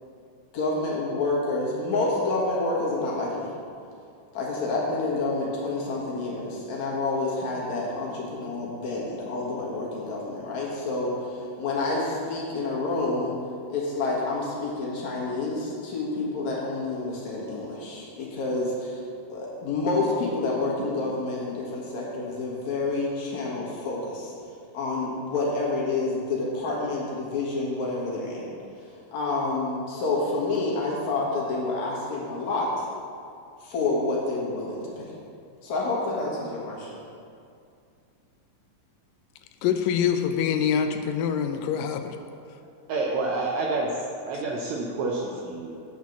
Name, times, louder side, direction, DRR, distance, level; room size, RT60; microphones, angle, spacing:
voice 1, 0.5-3.5 4.3-13.4 13.7-19.0 19.3-24.3 24.7-28.5 29.1-32.9 33.6-35.1 35.6-37.0, left 3 dB, 60° left, -4 dB, 2.7 m, -28 dB
voice 2, 39.6-42.2, left 8 dB, 85° left, 7 dB, 2.3 m, -25 dB
voice 3, 42.9-43.9 44.3-45.8, right 3 dB, 75° right, -1 dB, 1.7 m, -28 dB
9.3 x 4.7 x 7.1 m, 2.4 s
omnidirectional pair, 3.9 m